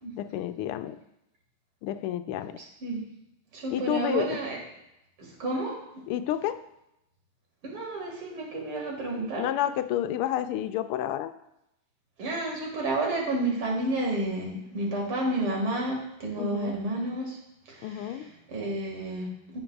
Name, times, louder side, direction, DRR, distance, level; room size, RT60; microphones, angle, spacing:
voice 1, 0.2-1.0 1.8-2.6 3.7-4.4 6.1-6.6 9.4-11.3 16.4-16.8 17.8-18.3, left 11 dB, 90° left, 10 dB, 1.5 m, -30 dB
voice 2, 3.5-4.6 5.2-5.8 7.6-9.5 12.2-17.4 17.7-18.2 18.5-19.6, right 2 dB, 80° right, -1 dB, 2.8 m, -30 dB
15.0 x 5.2 x 2.3 m, 0.86 s
omnidirectional pair, 2.4 m